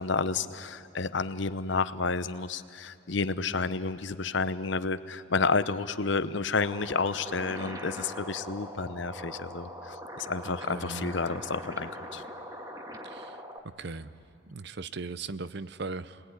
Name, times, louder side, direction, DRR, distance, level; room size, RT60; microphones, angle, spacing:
voice 1, 0.0-12.2, left 4 dB, 65° left, 13 dB, 0.8 m, -30 dB
sound 1, 6.6-13.6, equal, 20° right, 1.5 m, -41 dB
voice 2, 10.4-11.2 13.0-13.3 13.8-14.1 14.5-16.2, right 3 dB, 55° right, 15 dB, 0.6 m, -38 dB
29.0 x 20.5 x 9.7 m, 2.5 s
head